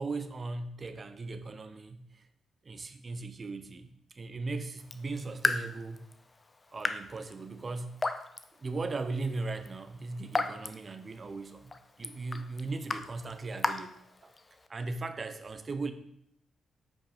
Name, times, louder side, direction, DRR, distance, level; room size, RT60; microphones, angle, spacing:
voice 1, 0.0-2.3 2.6-6.1 6.7-8.0 8.6-11.7 12.0-14.3 14.7-15.9, right 3 dB, 35° right, 10 dB, 0.8 m, -38 dB
Raindrop / Drip, 4.8-14.7, left 3 dB, 25° left, 0.7 m, -37 dB
8.1 x 5.4 x 5.1 m, 0.72 s
cardioid pair, 90°, 0 cm